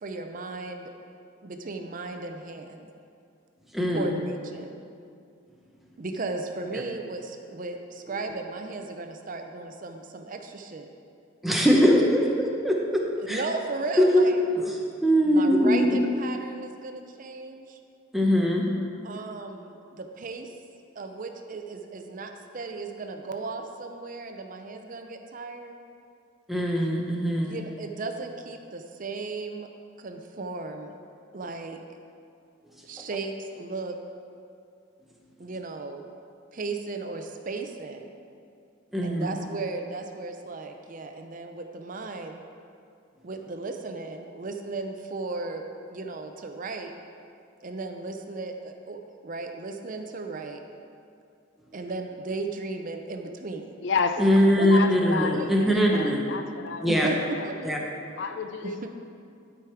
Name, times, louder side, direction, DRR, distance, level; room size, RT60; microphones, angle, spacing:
voice 1, 0.0-0.9 1.4-2.9 3.9-4.8 6.0-10.9 13.2-14.4 15.2-17.8 19.0-20.5 21.0-25.8 27.4-29.7 30.0-30.9 31.3-31.8 32.8-34.0 35.4-36.0 36.5-38.1 39.0-42.4 43.2-45.6 45.9-46.9 47.6-50.6 51.7-53.7 54.6-54.7 55.2-56.1 56.9-57.7 58.6-58.9, right 3 dB, 40° right, 5 dB, 0.5 m, -35 dB
voice 2, 3.7-4.1 11.4-13.4 14.1-14.3 14.5-14.8 15.0-16.0 18.1-18.7 26.5-27.6 38.9-39.3 54.2-56.2 56.8-57.1 57.6-57.8, equal, ahead, -2 dB, 0.9 m, -22 dB
voice 3, 53.8-54.2 54.7-56.9 57.4-57.5 58.2-58.9, left 5 dB, 60° left, 8 dB, 0.4 m, -31 dB
12.0 x 4.9 x 4.6 m, 2.5 s
head